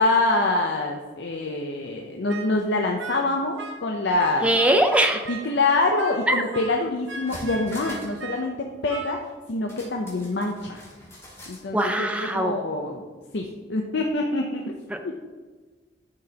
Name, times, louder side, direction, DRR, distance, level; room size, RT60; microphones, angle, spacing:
voice 1, 0.0-4.5 5.3-10.8 11.5-13.1 13.3-14.7 15.0-15.1, left 2 dB, 70° left, 1 dB, 0.6 m, -25 dB
sound 1, 2.3-2.6 3.0-3.9 4.2-5.5 6.0-8.5 8.9-9.3, right 3 dB, 85° right, 0.8 m, -38 dB
voice 2, 4.4-5.3 6.3-6.4 11.7-12.6 14.9-15.0, right 1 dB, 5° right, 5 dB, 0.6 m, -21 dB
sound 2, 7.1-8.2 8.5-8.6 9.7-11.7 12.0-12.1, left 1 dB, 15° left, 2.1 m, -42 dB
10.5 x 6.1 x 2.9 m, 1.4 s
head